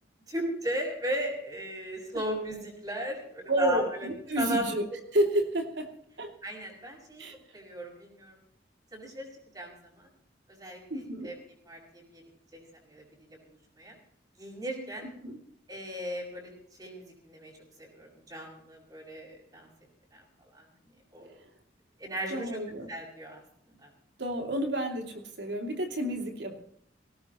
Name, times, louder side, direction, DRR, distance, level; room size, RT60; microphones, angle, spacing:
voice 1, 0.3-4.1 4.4-4.6 6.4-7.2 7.5-8.4 8.9-9.3 9.5-10.1 10.5-11.3 11.7-12.2 12.5-12.6 12.9-13.0 13.5-13.9 14.4-15.1 15.7-16.5 16.8-17.5 17.8-19.7 20.1-20.6 21.1-21.3 22.0-22.6 22.9-23.9, right 1 dB, 20° right, -1 dB, 6.2 m, -36 dB
voice 2, 3.5-4.8 5.1-5.9 6.2-6.3 7.2-7.3 10.9-11.3 15.2-15.4 22.3-22.9 24.2-26.6, right 1 dB, 75° right, 4 dB, 2.9 m, -30 dB
18.5 x 18.0 x 3.1 m, 0.67 s
head